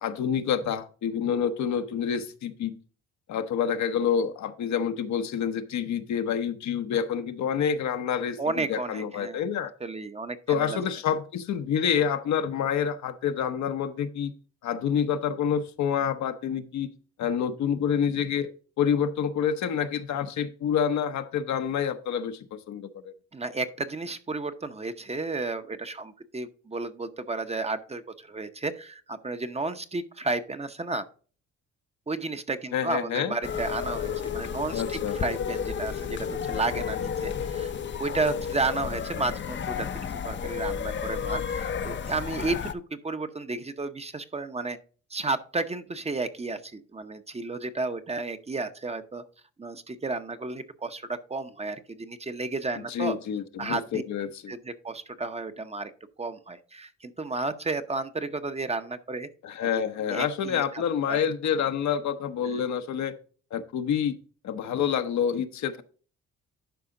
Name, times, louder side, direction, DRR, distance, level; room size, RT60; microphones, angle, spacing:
voice 1, 0.0-2.8 3.3-9.7 10.5-14.3 14.6-18.5 18.8-23.1 32.7-33.4 34.7-35.2 52.9-54.5 59.4-63.1 63.5-64.1 64.4-65.8, left 8 dB, 70° left, 9 dB, 0.9 m, -28 dB
voice 2, 8.4-9.4 9.8-10.8 23.3-31.1 32.1-37.7 38.0-44.8 45.1-49.2 49.6-53.2 53.6-54.0 54.5-55.9 56.2-59.3 59.6-59.7 60.1-60.8 61.1-61.2 62.4-62.6, right 3 dB, 20° right, 9 dB, 0.7 m, -32 dB
sound 1, 33.4-42.7, left 7 dB, 40° left, 0.6 m, -32 dB
11.5 x 4.9 x 3.8 m, 0.40 s
cardioid pair, 90°, 30 cm